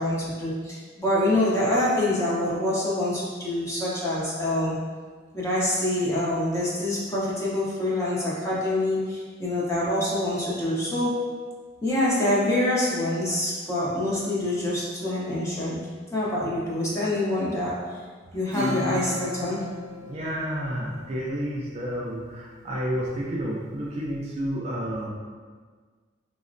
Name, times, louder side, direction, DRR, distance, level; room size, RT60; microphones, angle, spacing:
voice 1, 0.0-4.8 5.3-11.5 11.8-18.0 18.3-19.7, left 1 dB, 15° left, -7 dB, 0.6 m, -26 dB
Acoustic guitar / Strum, 18.5-21.4, left 2 dB, 60° right, 0.8 m, -34 dB
voice 2, 20.0-25.1, equal, 35° right, -4 dB, 0.3 m, -30 dB
3.9 x 2.1 x 2.5 m, 1.5 s
head